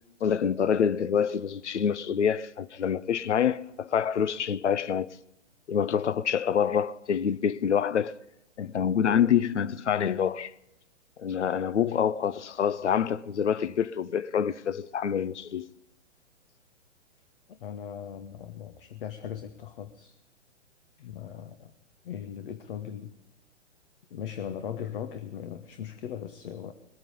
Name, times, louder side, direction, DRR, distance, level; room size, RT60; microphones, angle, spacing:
voice 1, 0.2-5.2 5.7-8.1 8.6-10.5 11.2-15.7, left 8 dB, 75° left, 0.7 m, -26 dB
voice 2, 17.5-20.1 21.0-21.7 22.0-23.1 24.1-26.7, left 9 dB, 50° left, 1.2 m, -39 dB
21.5 x 9.1 x 5.3 m
figure-of-eight pair, 120°, 35 cm